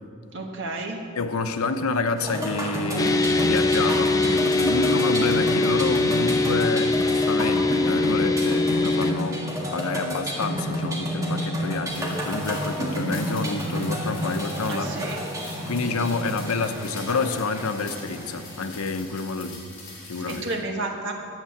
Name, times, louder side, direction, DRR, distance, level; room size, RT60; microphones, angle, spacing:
voice 1, 0.3-1.0 14.6-15.2 15.9-16.1 20.3-21.1, right 2 dB, 55° right, 2 dB, 1.4 m, -31 dB
voice 2, 1.2-14.9 15.7-19.7 20.1-20.5, left 3 dB, 85° left, 9 dB, 0.8 m, -28 dB
sound 1, 2.2-19.0, equal, 15° right, 1.6 m, -30 dB
sound 2, 3.0-9.1, left 2 dB, 15° left, 0.5 m, -22 dB
sound 3, 11.9-20.6, left 2 dB, 35° left, 3.6 m, -42 dB
11.0 x 8.2 x 7.2 m, 2.3 s
head